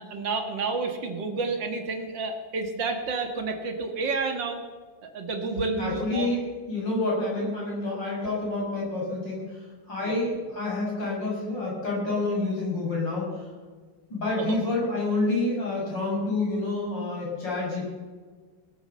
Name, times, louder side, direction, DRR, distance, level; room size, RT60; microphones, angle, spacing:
voice 1, 0.0-4.6 5.0-6.3 10.0-10.1 14.4-14.6, right 3 dB, 65° right, 5 dB, 2.5 m, -30 dB
voice 2, 5.8-6.4 6.7-13.5 14.1-17.9, left 2 dB, 65° left, -5 dB, 7.2 m, -28 dB
19.5 x 8.5 x 6.9 m, 1.5 s
omnidirectional pair, 2.1 m